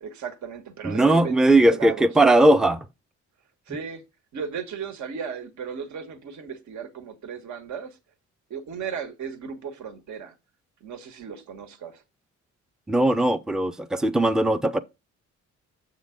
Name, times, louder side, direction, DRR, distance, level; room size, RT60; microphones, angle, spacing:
voice 1, 0.0-2.1 3.7-4.0 4.3-8.0 8.5-10.3 10.8-12.0, right 6 dB, 70° right, 1.4 m, -35 dB
voice 2, 0.8-2.9 12.9-14.8, right 1 dB, ahead, 0.5 m, -19 dB
7.2 x 3.7 x 5.0 m
cardioid pair, 90°, 30 cm